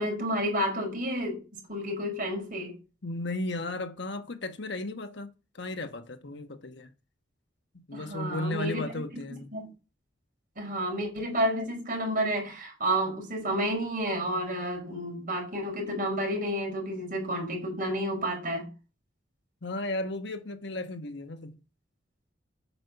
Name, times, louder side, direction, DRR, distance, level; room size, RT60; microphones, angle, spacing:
voice 1, 0.0-1.4 1.7-2.7 7.9-9.0 9.3-9.7 10.6-18.7, equal, 45° right, 5.2 m, -30 dB
voice 2, 3.0-6.9 7.9-9.5 19.6-21.6, left 2 dB, 60° left, 1.2 m, -35 dB
8.7 x 6.7 x 5.8 m
head